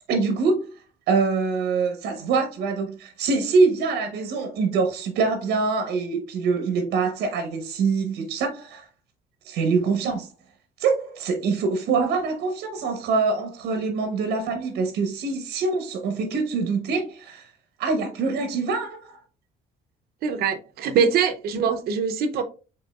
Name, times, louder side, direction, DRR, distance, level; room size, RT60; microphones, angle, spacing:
voice 1, 0.1-0.7 1.1-8.8 9.4-10.3 10.8-17.5 17.8-19.2, right 4 dB, 90° right, 1.0 m, -24 dB
voice 2, 20.2-22.4, right 6 dB, 65° right, 0.7 m, -23 dB
5.3 x 3.7 x 2.3 m
cardioid pair, 110°, 17 cm